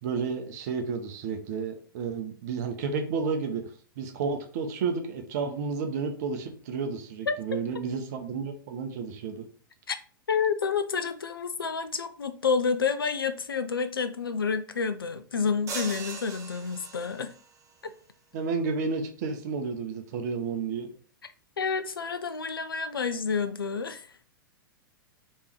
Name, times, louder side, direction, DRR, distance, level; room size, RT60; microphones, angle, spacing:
voice 1, 0.0-3.7 4.0-9.5 18.3-20.9, right 5 dB, 50° right, 0.8 m, -31 dB
voice 2, 10.3-17.3 17.8-17.9 21.6-24.1, left 5 dB, 80° left, 0.4 m, -29 dB
sound 1, 15.7-17.5, right 5 dB, 30° right, 0.8 m, -39 dB
3.5 x 3.2 x 4.4 m
figure-of-eight pair, 100°, 12 cm